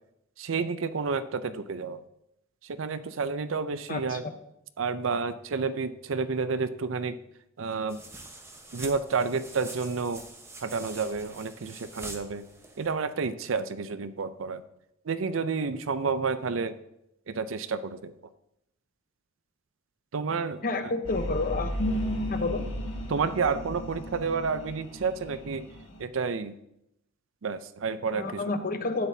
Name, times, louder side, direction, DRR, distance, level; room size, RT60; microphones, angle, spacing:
voice 1, 0.4-2.0 2.6-4.3 4.8-7.2 7.6-8.0 8.7-10.2 10.6-12.5 12.8-14.6 15.0-16.8 17.3-18.1 20.1-20.6 23.1-25.7 26.0-26.6 27.4-28.6, right 5 dB, 75° right, 13 dB, 0.5 m, -30 dB
voice 2, 3.9-4.3 20.6-21.7 22.3-22.6 28.1-29.1, left 3 dB, 45° left, 7 dB, 0.9 m, -30 dB
sound 1, 7.9-12.9, right 2 dB, 15° right, 1.0 m, -45 dB
sound 2, 21.0-26.0, equal, 80° left, 1.7 m, -34 dB
12.0 x 9.1 x 2.7 m, 0.82 s
head